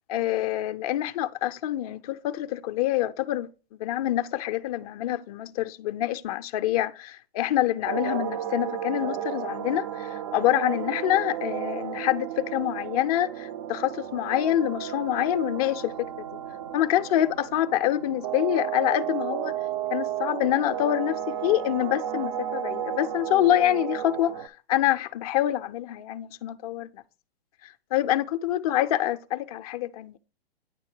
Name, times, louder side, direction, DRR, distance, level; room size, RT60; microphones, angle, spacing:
voice 1, 0.1-3.5 3.8-16.3 16.7-19.6 19.9-27.0 27.6-30.2, left 13 dB, 40° left, 0.4 m, -26 dB
sound 1, 7.9-24.5, right 10 dB, 35° right, 0.4 m, -33 dB
9.1 x 3.2 x 4.4 m
hypercardioid pair, 130°, 31 cm